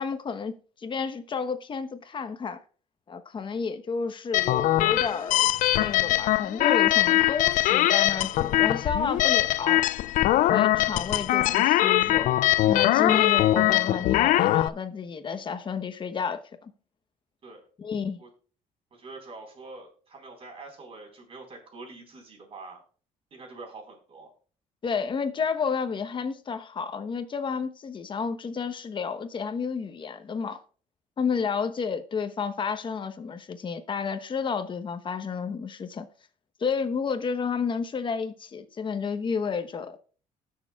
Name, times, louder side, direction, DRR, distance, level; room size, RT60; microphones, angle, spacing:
voice 1, 0.0-2.6 3.1-9.9 10.5-12.3 12.7-16.7 17.8-18.2 24.8-30.6 31.2-36.1 36.6-40.0, left 5 dB, 35° left, 1.0 m, -31 dB
sound 1, 4.3-14.7, left 15 dB, 70° left, 0.4 m, -22 dB
voice 2, 18.9-22.8 23.3-24.3, right 3 dB, 45° right, 4.5 m, -45 dB
19.5 x 6.6 x 2.4 m
cardioid pair, 110°, 14 cm